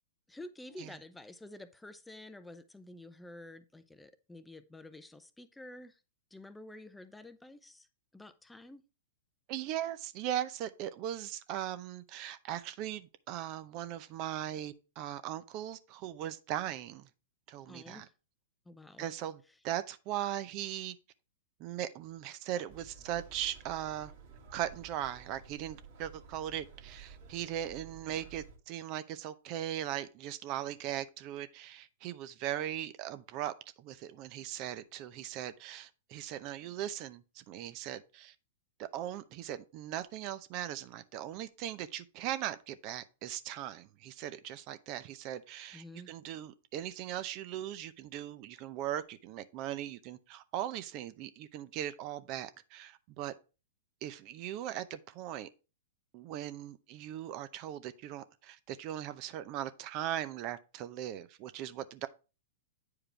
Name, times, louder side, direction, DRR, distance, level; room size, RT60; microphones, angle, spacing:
voice 1, 0.3-6.0 6.3-7.9 8.1-8.8 17.7-18.1 18.7-19.1 45.7-46.1, left 1 dB, 5° left, 0.6 m, -50 dB
voice 2, 9.5-17.1 17.5-18.1 19.0-21.0 21.6-24.1 24.5-38.3 38.8-53.3 54.0-55.5 56.1-62.1, right 12 dB, 45° right, 0.6 m, -39 dB
sound 1, 22.7-28.6, right 6 dB, 60° right, 2.0 m, -53 dB
8.8 x 4.8 x 3.3 m
hypercardioid pair, 115°, 0 cm